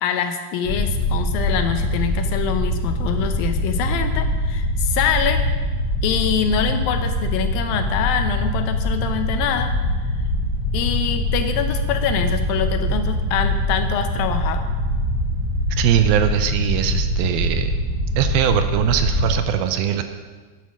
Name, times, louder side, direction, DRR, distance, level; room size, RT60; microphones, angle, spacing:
voice 1, 0.0-5.5 6.0-9.7 10.7-14.7, left 8 dB, 80° left, 7 dB, 2.5 m, -24 dB
sound 1, 0.7-19.4, left 1 dB, 50° left, 2.7 m, -23 dB
voice 2, 15.8-17.7 18.2-20.0, right 10 dB, 85° right, 8 dB, 2.5 m, -21 dB
10.0 x 9.7 x 6.3 m, 1.4 s
omnidirectional pair, 4.3 m